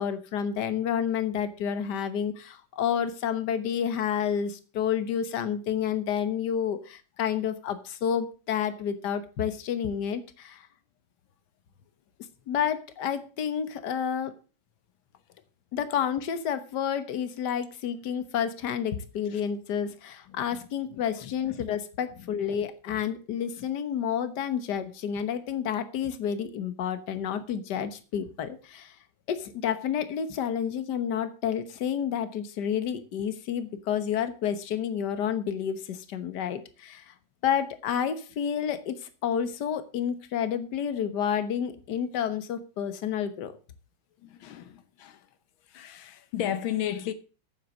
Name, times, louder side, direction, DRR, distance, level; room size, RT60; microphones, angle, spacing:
voice 1, 0.0-10.7 12.5-14.3 15.7-29.0 29.3-37.1 37.4-43.5, left 8 dB, 60° left, 1.7 m, -30 dB
voice 2, 44.2-45.2 45.7-47.1, left 11 dB, 85° left, 1.7 m, -33 dB
9.2 x 7.5 x 6.5 m
omnidirectional pair, 2.1 m